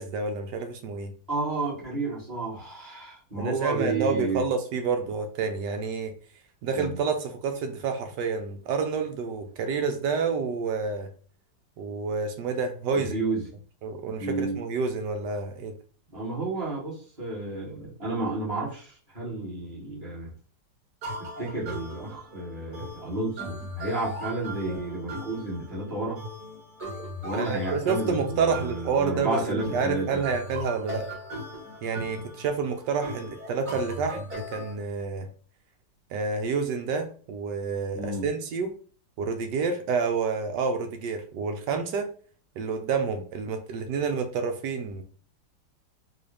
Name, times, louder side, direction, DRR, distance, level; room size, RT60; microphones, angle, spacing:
voice 1, 0.0-1.1 3.4-6.1 6.6-11.1 11.8-13.2 13.8-15.7 27.3-31.1 31.8-34.2 34.5-35.3 36.1-38.7 39.2-42.1 42.6-45.0, right 5 dB, 75° right, 6 dB, 1.1 m, -29 dB
voice 2, 1.3-4.4 6.7-7.0 12.9-13.4 14.2-14.6 16.1-20.3 21.4-26.2 27.2-30.2 37.9-38.2, right 2 dB, 20° right, -8 dB, 1.4 m, -31 dB
sound 1, 21.0-34.7, equal, 55° right, 1.9 m, -39 dB
3.9 x 2.4 x 3.2 m, 0.44 s
omnidirectional pair, 2.1 m